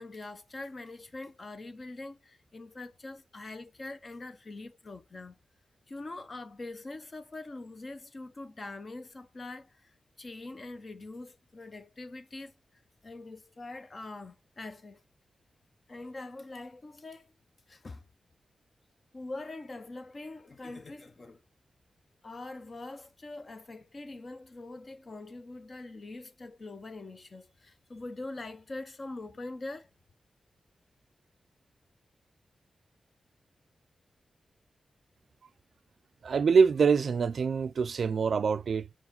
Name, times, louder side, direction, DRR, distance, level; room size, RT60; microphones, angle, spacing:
voice 1, 0.0-5.4 5.9-12.5 13.0-15.0 15.9-17.3 17.7-18.0 19.1-21.4 22.2-29.9, left 2 dB, 35° left, 0.7 m, -43 dB
voice 2, 36.2-39.0, right 5 dB, 60° right, 0.3 m, -25 dB
5.8 x 4.7 x 3.7 m
wide cardioid pair, 150°, 0 cm